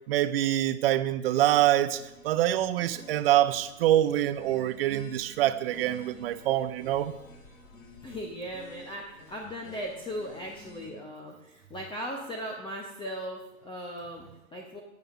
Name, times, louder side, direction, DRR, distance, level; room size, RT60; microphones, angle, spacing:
voice 1, 0.1-7.1, right 13 dB, 45° right, 14 dB, 0.5 m, -25 dB
sound 1, 1.2-10.9, left 1 dB, 65° left, 3.4 m, -51 dB
voice 2, 8.0-14.8, equal, 10° left, 0 dB, 0.9 m, -38 dB
14.0 x 8.0 x 2.6 m, 0.95 s
hypercardioid pair, 110°, 43 cm